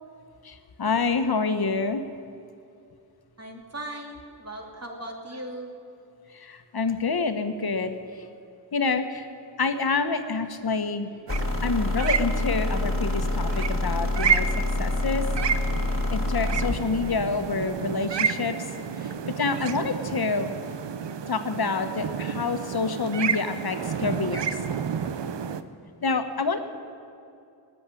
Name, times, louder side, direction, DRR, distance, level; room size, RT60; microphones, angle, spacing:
voice 1, 0.4-2.0 6.3-7.9 8.7-9.2 9.6-11.1 11.6-14.5 14.8-15.2 16.1-18.6 19.0-20.5 21.3-24.6 26.0-26.6, left 4 dB, 55° left, 8 dB, 1.3 m, -27 dB
voice 2, 3.4-5.7, right 1 dB, 35° right, 1 dB, 2.8 m, -38 dB
sound 1, 11.3-16.8, left 2 dB, 30° left, 1.8 m, -27 dB
sound 2, 11.3-25.6, right 7 dB, 75° right, 0.8 m, -31 dB
19.0 x 7.7 x 9.8 m, 2.6 s
wide cardioid pair, 70°, 43 cm